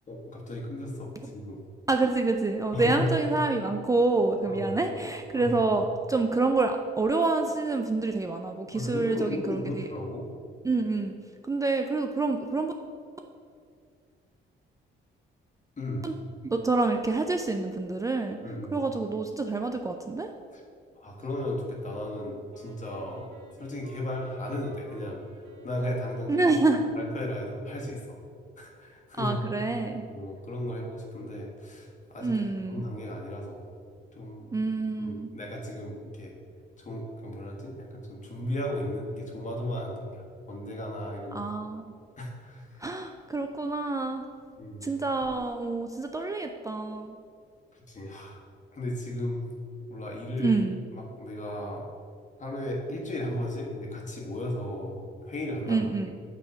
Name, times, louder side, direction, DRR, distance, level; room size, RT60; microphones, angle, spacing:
voice 1, 0.1-1.6 2.7-3.1 4.4-4.7 5.3-5.6 8.7-10.2 15.8-16.1 18.4-18.8 20.5-20.6 21.0-23.3 23.6-26.4 27.0-28.2 28.6-29.4 30.1-32.3 32.7-33.7 34.1-34.5 35.0-36.3 36.8-41.6 42.2-42.9 44.6-44.9 47.7-48.4 48.7-49.4 49.9-50.6 50.9-51.8 52.4-55.0 55.2-55.8, left 1 dB, 40° left, -1 dB, 1.6 m, -35 dB
voice 2, 1.9-9.9 10.6-11.1 11.4-12.7 16.0-16.1 16.4-18.4 18.7-20.3 26.3-26.8 29.2-30.1 32.2-32.8 34.5-35.3 41.3-41.9 42.8-44.3 44.8-47.2 50.4-50.8 55.7-56.1, right 3 dB, 15° right, 4 dB, 0.4 m, -27 dB
Wind instrument woodwind instrument, 22.5-27.5, right 1 dB, 80° right, 1.1 m, -50 dB
8.2 x 3.6 x 5.5 m, 2.2 s
cardioid pair, 90°, 20 cm